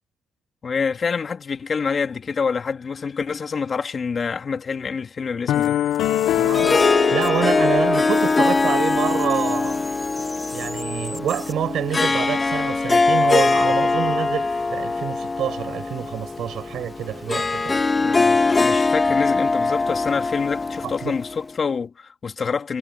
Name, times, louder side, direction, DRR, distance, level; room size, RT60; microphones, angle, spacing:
voice 1, 0.6-5.8 18.0-22.8, left 5 dB, 40° left, 2.2 m, -27 dB
sound 1, 5.5-8.7, left 13 dB, 85° left, 0.7 m, -23 dB
sound 2, 5.5-7.7 7.9-11.5, left 1 dB, 10° left, 4.9 m, -39 dB
Harp, 6.3-21.5, left 3 dB, 25° left, 2.1 m, -22 dB
voice 2, 6.4-9.8 10.5-17.8 20.8-21.1, right 10 dB, 70° right, 6.5 m, -27 dB
cardioid pair, 90°, 0 cm